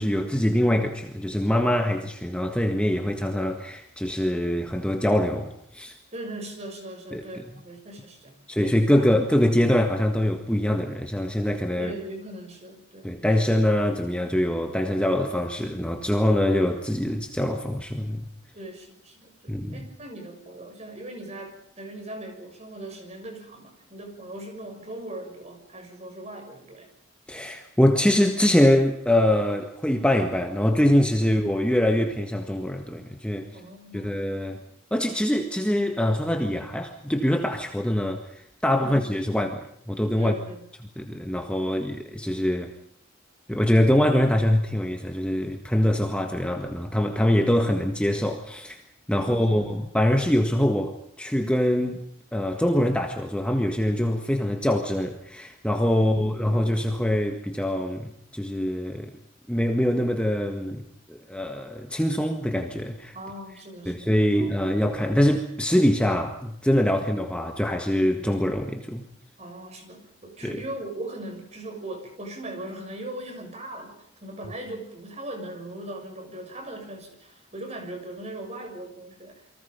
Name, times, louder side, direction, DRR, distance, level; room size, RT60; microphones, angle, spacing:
voice 1, 0.0-5.9 7.1-7.2 8.5-11.9 13.0-18.3 19.5-19.8 27.3-33.5 33.9-34.6 34.9-40.3 41.0-42.7 43.5-48.8 49.1-52.0 52.3-59.1 59.5-60.8 61.1-63.1 63.8-69.1 70.4-70.6, left 1 dB, 5° left, 1.7 m, -24 dB
voice 2, 6.1-9.2 11.7-13.5 18.5-26.9 31.2-31.3 33.5-34.2 34.5-34.6 38.8-39.1 40.2-40.7 49.1-49.7 55.9-56.7 63.1-64.6 66.9-67.0 69.4-79.5, right 1 dB, 35° right, 6.5 m, -39 dB
29.0 x 24.5 x 5.4 m
head